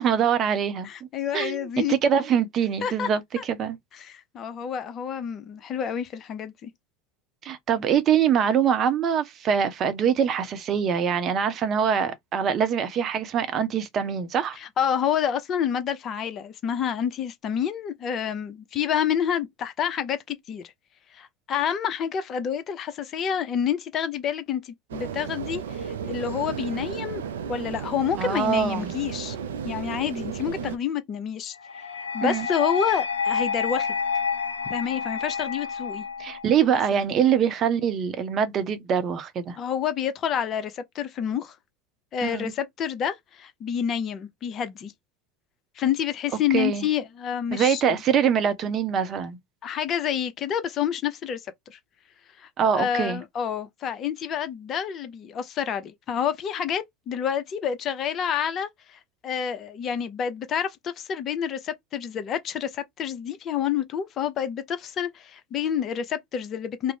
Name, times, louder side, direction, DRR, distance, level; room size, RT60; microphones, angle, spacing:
voice 1, 0.0-0.9 1.3-3.8 7.4-14.6 28.2-28.9 32.2-32.5 36.2-39.6 42.2-42.5 46.5-46.9 47.5-49.4 52.6-53.2, right 8 dB, 40° right, 0.7 m, -24 dB
voice 2, 0.8-2.0 2.8-3.1 3.4-3.5 4.0-6.7 14.6-20.6 21.1-25.6 26.0-27.2 27.5-29.4 29.6-31.5 32.1-33.9 34.7-36.0 36.9-37.1 39.6-41.5 42.1-44.9 45.8-48.0 49.6-51.4 51.7-51.8 52.4-52.5 52.7-66.9, left 8 dB, 40° left, 0.6 m, -28 dB
sound 1, 24.9-30.8, right 7 dB, 80° right, 0.3 m, -34 dB
sound 2, 31.6-36.7, left 6 dB, 90° left, 0.5 m, -29 dB
2.4 x 2.1 x 3.3 m
hypercardioid pair, 80°, 0 cm